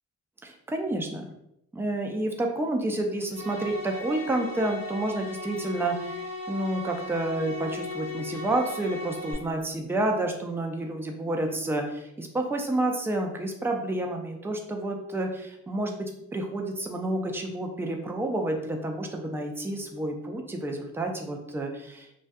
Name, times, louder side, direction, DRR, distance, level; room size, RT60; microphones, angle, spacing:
voice 1, 0.4-1.2 1.7-22.2, right 1 dB, 10° right, 2 dB, 0.3 m, -30 dB
sound 1, 3.3-9.3, left 2 dB, 25° left, 1.0 m, -37 dB
2.2 x 2.2 x 2.5 m, 0.82 s
cardioid pair, 90°, 30 cm